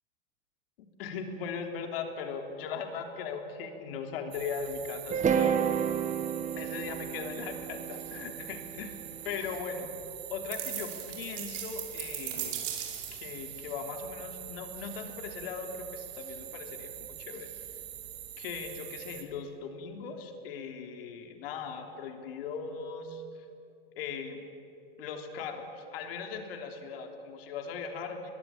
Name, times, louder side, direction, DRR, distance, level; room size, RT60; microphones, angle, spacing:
voice 1, 1.0-5.7 6.6-9.9 10.3-12.7 13.1-17.5 18.4-23.2 23.9-24.4 25.0-28.3, left 5 dB, 70° left, 4 dB, 3.4 m, -39 dB
sound 1, 4.3-19.2, right 11 dB, 80° right, 2.8 m, -44 dB
sound 2, 5.1-9.3, right 8 dB, 25° right, 1.6 m, -30 dB
sound 3, 10.5-13.3, right 11 dB, 65° right, 4.9 m, -38 dB
23.0 x 21.0 x 8.5 m, 2.7 s
hypercardioid pair, 110°, 30 cm